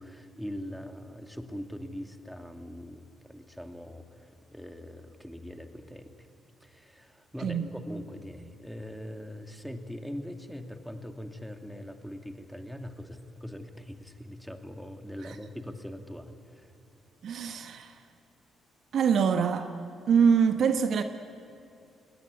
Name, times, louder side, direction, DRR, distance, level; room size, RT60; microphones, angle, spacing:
voice 1, 0.0-6.1 6.6-16.7, equal, ahead, 2.5 m, -42 dB
voice 2, 17.2-17.9 18.9-19.7 20.1-21.0, right 6 dB, 60° right, 1.1 m, -24 dB
21.5 x 19.5 x 10.0 m
hypercardioid pair, 40°, 0 cm